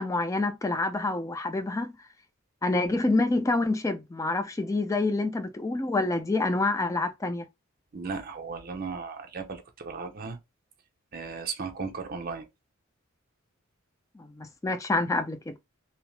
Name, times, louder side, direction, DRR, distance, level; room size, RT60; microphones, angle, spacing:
voice 1, 0.0-2.0 2.6-7.4 14.2-15.5, left 2 dB, 15° left, 0.3 m, -27 dB
voice 2, 7.9-10.4 11.1-12.5, right 4 dB, 45° right, 0.6 m, -36 dB
2.7 x 2.0 x 3.1 m
head